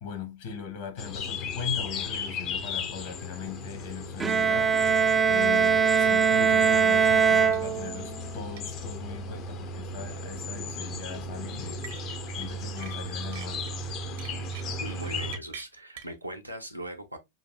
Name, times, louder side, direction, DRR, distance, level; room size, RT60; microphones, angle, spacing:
voice 1, 0.0-4.7 5.3-11.8 12.3-13.7, left 6 dB, 55° left, 1.7 m, -39 dB
sound 1, 1.0-15.4, left 3 dB, 35° left, 0.7 m, -36 dB
Bowed string instrument, 4.2-8.2, right 6 dB, 15° right, 0.4 m, -22 dB
sound 2, 7.5-7.7 8.0-8.1 8.6-8.7 9.9-10.2 11.8-12.5 12.8-13.7 14.2-16.2, right 9 dB, 55° right, 0.8 m, -45 dB
voice 2, 14.8-17.2, right 1 dB, 90° right, 0.9 m, -39 dB
6.1 x 2.6 x 2.3 m
figure-of-eight pair, 90°, 0 cm